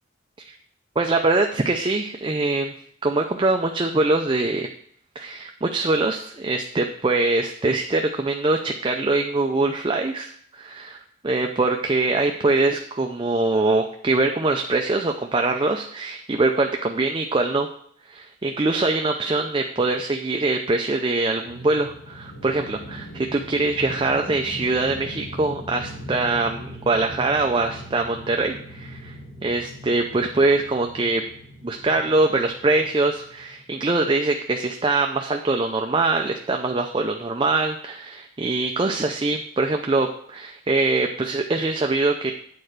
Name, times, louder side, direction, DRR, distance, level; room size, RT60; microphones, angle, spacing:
voice 1, 1.0-2.7 3.0-4.7 5.2-11.0 11.2-17.7 18.1-29.2 29.4-31.2 31.6-42.3, right 2 dB, 25° right, 3 dB, 0.5 m, -23 dB
sound 1, 21.5-33.7, equal, 75° left, 2.4 m, -40 dB
8.7 x 4.4 x 6.5 m, 0.63 s
head